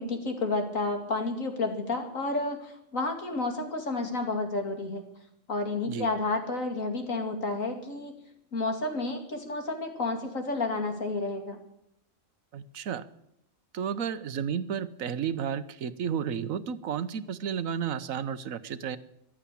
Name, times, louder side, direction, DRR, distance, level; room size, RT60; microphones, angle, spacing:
voice 1, 0.0-5.0 5.5-8.1 8.5-11.6, left 3 dB, 75° left, 4 dB, 2.9 m, -31 dB
voice 2, 12.5-13.1 13.7-19.0, right 8 dB, 80° right, 14 dB, 1.3 m, -32 dB
15.0 x 11.5 x 8.5 m, 0.78 s
omnidirectional pair, 1.4 m